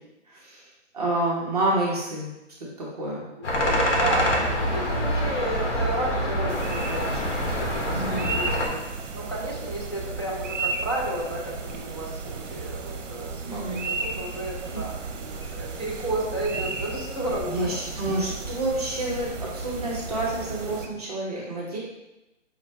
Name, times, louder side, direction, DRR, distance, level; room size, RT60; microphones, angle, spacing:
voice 1, 0.3-0.7 0.9-2.3 2.8-3.3 7.9-8.3 13.4-13.8 17.5-21.8, right 1 dB, 30° right, -5 dB, 0.7 m, -28 dB
sound 1, 3.4-8.7, equal, 70° left, 1.2 m, -25 dB
voice 2, 3.4-17.8, right 1 dB, 25° left, -6 dB, 0.4 m, -33 dB
sound 2, 6.5-20.9, right 4 dB, 80° right, 0.7 m, -34 dB
5.2 x 2.4 x 3.2 m, 0.96 s
hypercardioid pair, 165°, 37 cm